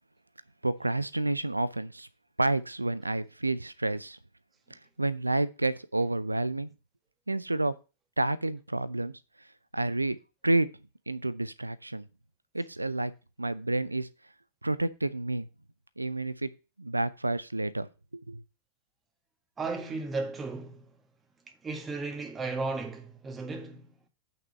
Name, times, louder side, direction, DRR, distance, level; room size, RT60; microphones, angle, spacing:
voice 1, 0.6-2.1 2.4-4.2 4.7-6.7 7.3-7.7 8.2-9.1 9.7-10.2 10.4-10.7 11.1-12.0 12.5-13.1 13.4-14.1 14.6-15.5 16.0-16.5 16.8-17.9 18.1-18.4, right 2 dB, 85° right, 0.6 m, -29 dB
voice 2, 19.6-20.9 21.6-23.9, right 3 dB, 20° right, 1.8 m, -35 dB
6.0 x 6.0 x 6.6 m
figure-of-eight pair, 90°, 0 cm